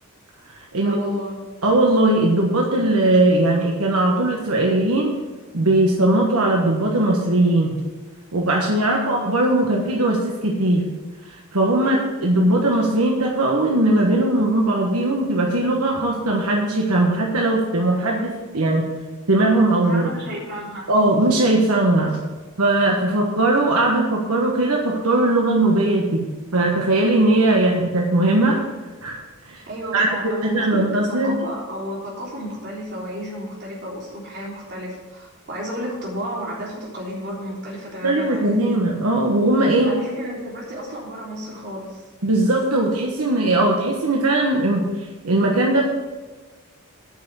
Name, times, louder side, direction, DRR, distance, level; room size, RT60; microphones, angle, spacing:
voice 1, 0.8-1.5 8.8-9.1 11.8-12.1 19.8-20.9 29.7-38.7 39.8-42.0, equal, 50° right, -5 dB, 3.6 m, -32 dB
voice 2, 1.6-5.1 5.5-7.7 8.3-10.9 11.3-18.9 19.3-20.1 20.9-22.2 22.6-26.2 26.5-28.6 29.0-29.2 29.4-29.6 29.9-31.4 38.0-39.9 42.2-45.8, right 2 dB, 90° right, -1 dB, 1.3 m, -19 dB
8.8 x 5.7 x 8.1 m, 1.3 s
head